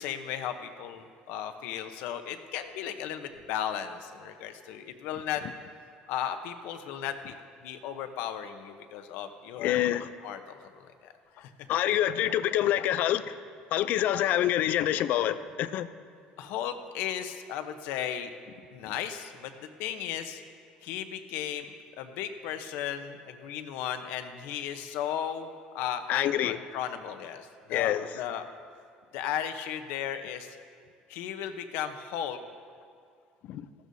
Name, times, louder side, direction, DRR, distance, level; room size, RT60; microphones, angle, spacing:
voice 1, 0.0-5.4 6.1-7.3 7.6-9.8 10.2-11.1 11.4-11.5 16.4-18.3 18.7-20.4 20.8-28.4 29.1-30.6 31.1-32.4, left 9 dB, 80° left, 0.9 m, -35 dB
voice 2, 9.6-10.1 11.7-13.4 13.7-15.9 26.1-26.6 27.7-28.1 33.5-33.7, left 12 dB, 65° left, 0.5 m, -26 dB
15.5 x 13.0 x 2.7 m
cardioid pair, 110°, 3 cm